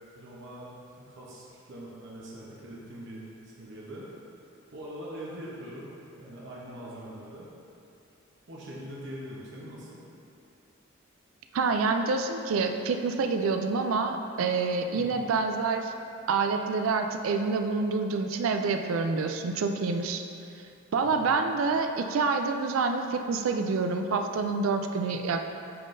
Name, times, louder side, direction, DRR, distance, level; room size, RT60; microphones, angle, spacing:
voice 1, 0.1-0.7 1.0-4.1 4.7-7.5 8.5-10.0 14.9-15.3 21.0-21.3, right 1 dB, 60° right, -6 dB, 0.9 m, -43 dB
voice 2, 11.5-15.9 16.3-20.2 20.9-25.5, right 4 dB, 80° right, 5 dB, 0.4 m, -27 dB
10.0 x 3.7 x 2.6 m, 2.6 s
head